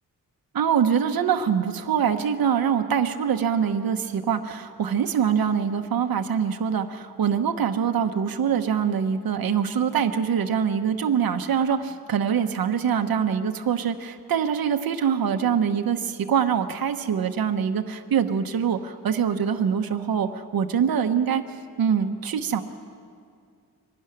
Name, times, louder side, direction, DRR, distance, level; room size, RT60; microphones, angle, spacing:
voice 1, 0.5-21.4 21.8-22.6, right 7 dB, 90° right, 6 dB, 1.1 m, -24 dB
23.5 x 12.5 x 9.9 m, 2.3 s
wide cardioid pair, 165°, 35 cm